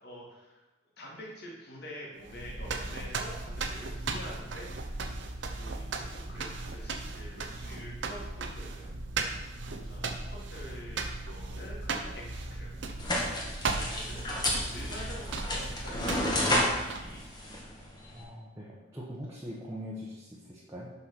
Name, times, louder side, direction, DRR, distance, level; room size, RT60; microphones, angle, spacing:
voice 1, 0.0-0.6 1.0-4.9 5.5-8.9 9.7-14.2 14.7-17.7, equal, 60° left, -3 dB, 2.3 m, -47 dB
sound 1, 2.2-17.3, right 3 dB, 75° right, 0.8 m, -37 dB
voice 2, 10.0-10.3 18.1-20.9, equal, 15° right, -6 dB, 1.2 m, -42 dB
sound 2, 13.0-18.2, left 1 dB, 25° left, 1.4 m, -31 dB
6.3 x 5.7 x 6.3 m, 1.1 s
head